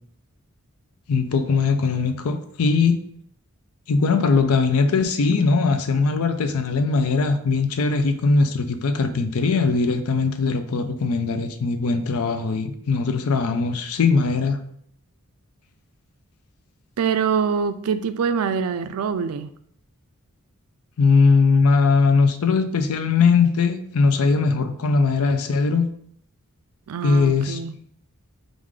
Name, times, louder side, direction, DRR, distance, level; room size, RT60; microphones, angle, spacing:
voice 1, 1.1-3.0 3.9-14.6 21.0-25.9 27.0-27.6, left 4 dB, 80° left, 8 dB, 0.5 m, -20 dB
voice 2, 17.0-19.5 26.9-27.7, right 6 dB, 75° right, 11 dB, 0.4 m, -24 dB
4.8 x 2.5 x 3.6 m, 0.65 s
head